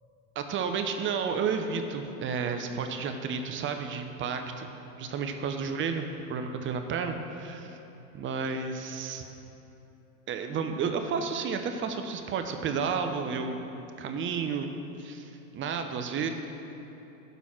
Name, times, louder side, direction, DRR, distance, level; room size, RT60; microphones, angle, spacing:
voice 1, 0.4-4.7 5.0-7.8 8.1-9.2 10.3-13.6 14.0-14.7 15.0-16.3, right 5 dB, 30° right, 6 dB, 0.8 m, -31 dB
12.0 x 4.1 x 5.9 m, 3.0 s
hypercardioid pair, 95°, 41 cm